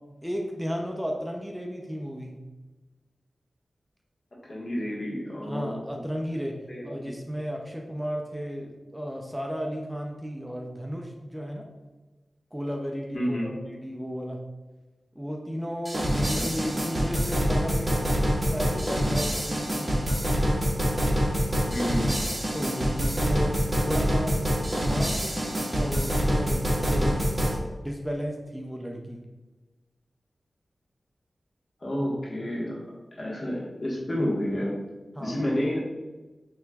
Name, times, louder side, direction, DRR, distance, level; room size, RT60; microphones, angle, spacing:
voice 1, 0.2-2.3 5.4-6.6 6.8-11.7 12.5-14.4 15.2-18.0 18.5-20.0 22.5-23.5 23.8-25.3 25.7-27.2 27.8-29.2 35.2-35.4, equal, 5° right, 1 dB, 0.5 m, -34 dB
voice 2, 4.5-6.0 6.7-7.1 13.1-13.5 16.3-16.5 21.7-22.1 23.8-23.9 31.8-32.8 33.2-34.8 35.2-35.8, equal, 50° left, -5 dB, 1.4 m, -30 dB
sound 1, 15.9-27.6, equal, 30° right, 1.5 m, -26 dB
5.9 x 3.0 x 2.3 m, 1.2 s
cardioid pair, 55°, 0 cm